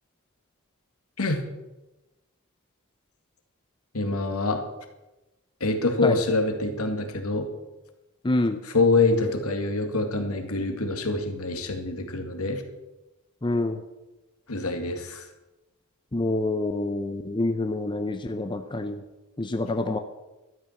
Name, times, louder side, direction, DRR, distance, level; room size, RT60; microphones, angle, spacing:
voice 1, 3.9-4.6 5.6-7.5 8.7-12.6 14.5-15.2, left 3 dB, 75° left, 5 dB, 2.0 m, -25 dB
voice 2, 8.2-8.6 13.4-13.8 16.1-19.0 19.4-20.0, left 2 dB, 20° left, 7 dB, 0.6 m, -26 dB
12.5 x 8.8 x 7.1 m, 1.0 s
head